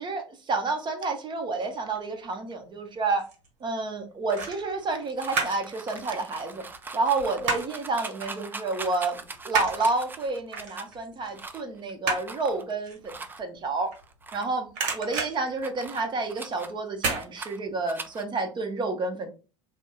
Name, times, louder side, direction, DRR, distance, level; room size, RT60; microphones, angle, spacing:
voice 1, 0.0-3.2 3.6-6.6 6.9-13.9 14.3-14.7 14.9-19.3, right 3 dB, 30° right, 4 dB, 0.9 m, -30 dB
sound 1, 2.9-3.5 4.3-5.7 6.0-7.9 8.2-8.4 8.7-14.4 14.7-16.3 16.9-17.3 17.7-17.8, right 4 dB, 55° right, 1.1 m, -32 dB
sound 2, 4.3-10.9 11.3-11.8 12.2-12.7 13.0-13.4 13.9-14.5 14.8-16.7 17.0-17.6 17.9-18.2, right 3 dB, 10° right, 0.4 m, -41 dB
2.7 x 2.1 x 3.7 m, 0.33 s
hypercardioid pair, 75°, 16 cm